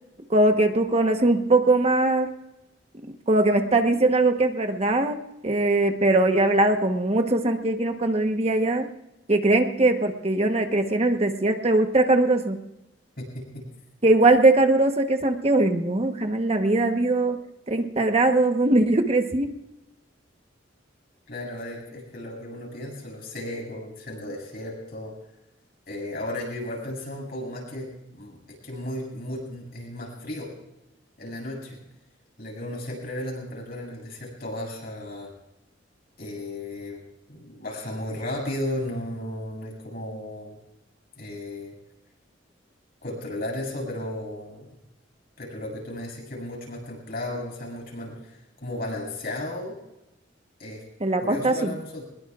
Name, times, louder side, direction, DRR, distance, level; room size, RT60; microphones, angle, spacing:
voice 1, 0.3-2.3 3.3-5.2 5.4-8.9 9.3-12.6 14.0-17.4 17.7-19.5 51.0-51.7, right 2 dB, 35° right, 6 dB, 1.1 m, -21 dB
voice 2, 13.2-13.7 21.3-25.1 25.9-30.5 31.2-31.8 32.4-35.3 36.2-37.0 37.3-40.6 41.2-41.7 43.0-44.7 45.4-49.8 50.6-50.8 51.2-52.0, left 1 dB, 55° left, 0 dB, 7.5 m, -34 dB
23.5 x 21.0 x 2.5 m, 0.94 s
head